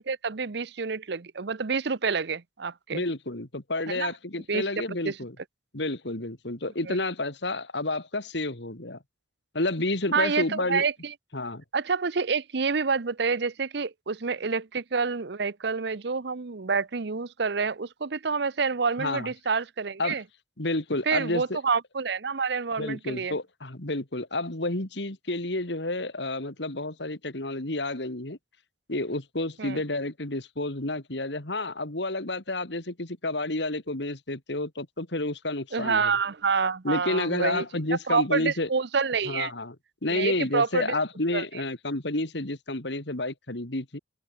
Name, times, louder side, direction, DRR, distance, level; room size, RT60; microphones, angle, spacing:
voice 1, 0.0-3.0 3.9-4.1 4.5-4.6 5.0-5.2 6.9-7.0 10.1-11.1 11.7-20.2 21.1-23.3 29.6-29.8 35.7-37.6 38.1-39.5 40.1-40.9 41.3-41.4, right 5 dB, 60° right, 0.7 m, -28 dB
voice 2, 2.9-5.4 5.7-9.0 9.5-10.8 11.3-11.6 19.0-19.3 20.0-20.2 20.6-21.6 22.8-28.4 28.9-36.1 36.8-38.7 39.2-39.8 40.0-44.0, left 2 dB, 65° left, 2.6 m, -30 dB
head